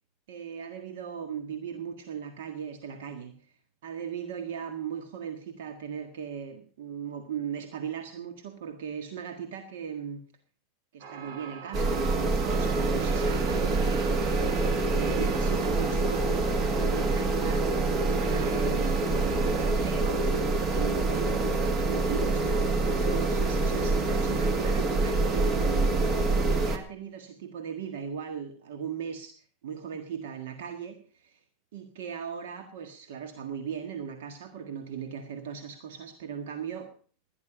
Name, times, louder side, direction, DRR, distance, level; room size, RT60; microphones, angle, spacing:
voice 1, 0.3-3.5 3.8-10.3 10.9-26.1 26.5-29.3 29.6-31.4 31.7-36.9, right 7 dB, 80° right, 7 dB, 1.6 m, -38 dB
sound 1, 11.0-19.7, right 6 dB, 55° right, 1.5 m, -42 dB
sound 2, 11.7-26.8, right 3 dB, 35° right, 1.8 m, -26 dB
17.0 x 11.0 x 5.0 m, 0.42 s
supercardioid pair, 125°, 0 cm